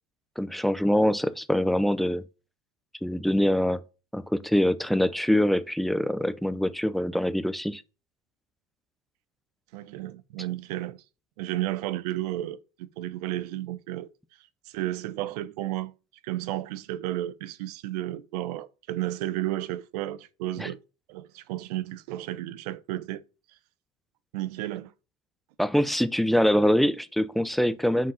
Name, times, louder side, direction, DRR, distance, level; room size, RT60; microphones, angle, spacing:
voice 1, 0.4-2.2 3.0-3.8 4.1-7.8 20.6-20.7 25.6-28.1, equal, ahead, 0.3 m, -24 dB
voice 2, 9.7-11.0 11.4-12.6 13.0-14.1 14.7-15.9 16.2-20.8 21.1-23.2 24.3-24.9, right 15 dB, 85° right, 0.7 m, -32 dB
5.9 x 4.9 x 5.5 m
supercardioid pair, 140°, 20 cm